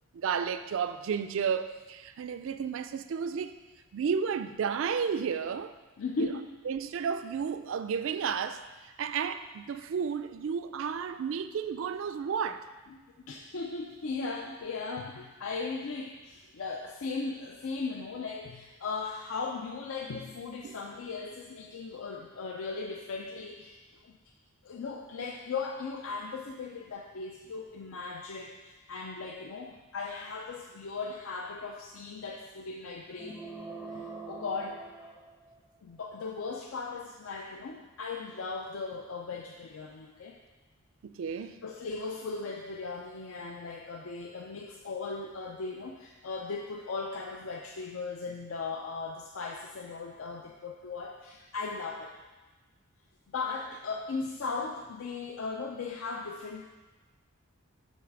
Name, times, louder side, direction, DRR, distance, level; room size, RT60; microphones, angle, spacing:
voice 1, 0.1-3.5 3.9-5.7 6.2-6.3 6.7-12.6 20.6-20.8 41.0-41.6, right 6 dB, 65° right, 10 dB, 0.3 m, -32 dB
voice 2, 6.0-6.5 12.9-23.8 24.0-24.1 24.6-33.4 33.9-35.2 35.8-40.4 41.6-52.1 53.3-56.6, left 4 dB, 70° left, 1 dB, 0.5 m, -37 dB
sound 1, 33.1-35.8, right 3 dB, 5° left, 0.5 m, -44 dB
8.2 x 3.2 x 6.0 m, 1.2 s
head